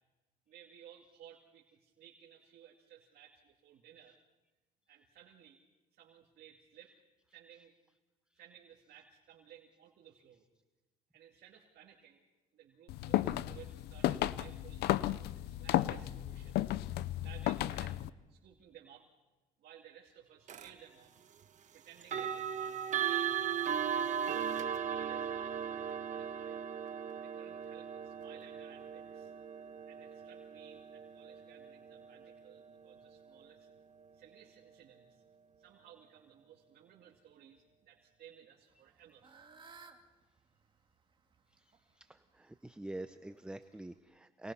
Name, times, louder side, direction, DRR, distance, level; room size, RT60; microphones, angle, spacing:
voice 1, 0.5-4.2 4.9-5.6 5.9-6.9 7.3-7.7 8.3-10.4 11.1-12.2 12.5-14.9 15.3-16.7 17.2-19.1 19.6-21.2 21.7-23.4 23.8-26.6 27.2-29.3 29.9-33.7 34.1-35.2 35.6-39.3, right 9 dB, 65° right, -1 dB, 2.6 m, -58 dB
sound 1, 12.9-18.1, left 14 dB, 80° left, 0.7 m, -34 dB
sound 2, 20.5-20.7 22.0-32.9, right 8 dB, 45° right, 1.3 m, -37 dB
Fowl / Bird, 38.7-44.0, right 4 dB, 30° right, 2.3 m, -61 dB
voice 2, 42.0-44.5, right 1 dB, 5° right, 10 dB, 0.7 m, -46 dB
27.5 x 20.5 x 5.7 m, 1.1 s
cardioid pair, 110°, 17 cm